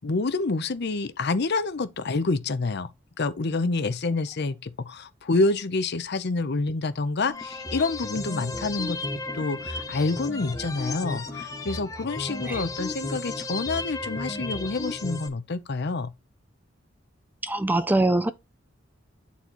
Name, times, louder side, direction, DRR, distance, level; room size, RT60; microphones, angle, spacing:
voice 1, 0.0-2.9 3.2-9.0 9.3-16.1, left 3 dB, 55° left, 0.7 m, -27 dB
sound 1, 7.3-15.3, left 2 dB, 15° left, 1.0 m, -34 dB
voice 2, 17.4-18.3, right 2 dB, 10° right, 0.4 m, -23 dB
9.2 x 4.2 x 3.0 m
head